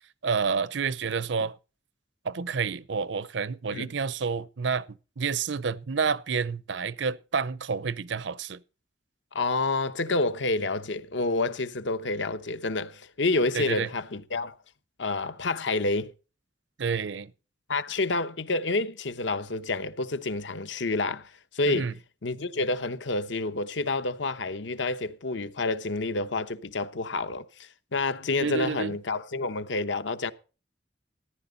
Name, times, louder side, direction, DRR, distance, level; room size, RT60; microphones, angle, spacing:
voice 1, 0.2-1.5 2.2-8.6 13.5-13.9 16.8-17.3 21.7-21.9 28.4-29.0, right 5 dB, 75° right, 0.6 m, -29 dB
voice 2, 9.3-14.5 15.0-16.1 17.7-21.9 22.2-27.5 27.9-30.3, left 3 dB, 80° left, 0.9 m, -28 dB
14.5 x 10.5 x 4.0 m
head